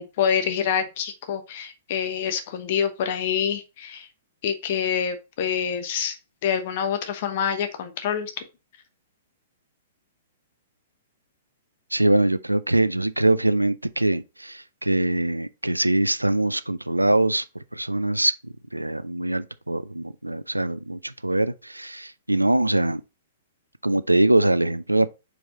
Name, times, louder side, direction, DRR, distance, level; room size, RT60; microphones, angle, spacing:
voice 1, 0.0-4.1 4.4-6.2 6.4-8.4, left 8 dB, 45° left, 1.0 m, -26 dB
voice 2, 11.9-17.4 17.7-18.3 18.7-23.0 23.8-25.1, right 1 dB, 85° right, 0.4 m, -23 dB
5.2 x 4.7 x 4.0 m
figure-of-eight pair, 110°, 0 cm